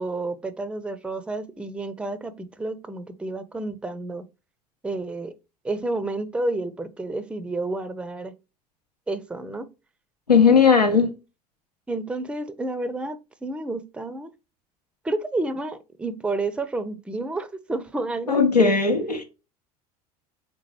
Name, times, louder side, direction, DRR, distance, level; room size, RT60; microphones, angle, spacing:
voice 1, 0.0-4.2 4.8-5.3 5.6-8.3 9.1-9.7 11.9-14.3 15.0-18.7, right 2 dB, 5° right, 0.5 m, -30 dB
voice 2, 10.3-11.1 18.3-19.2, left 5 dB, 85° left, 0.8 m, -17 dB
4.5 x 3.7 x 3.1 m
figure-of-eight pair, 70°, 20 cm